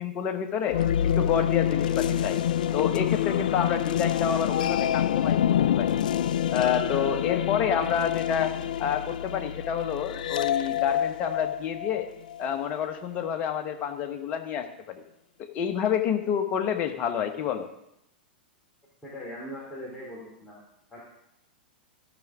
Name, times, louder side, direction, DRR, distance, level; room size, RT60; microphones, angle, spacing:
voice 1, 0.0-2.4 2.7-5.9 6.5-8.5 8.8-12.1 12.4-15.0 15.4-17.7, left 8 dB, 30° left, 6 dB, 1.1 m, -29 dB
sound 1, 0.7-12.5, left 10 dB, 60° left, 0.3 m, -27 dB
voice 2, 19.0-20.6 20.9-21.0, equal, 10° left, -7 dB, 2.8 m, -40 dB
14.0 x 6.0 x 3.6 m, 0.82 s
figure-of-eight pair, 100°, 5 cm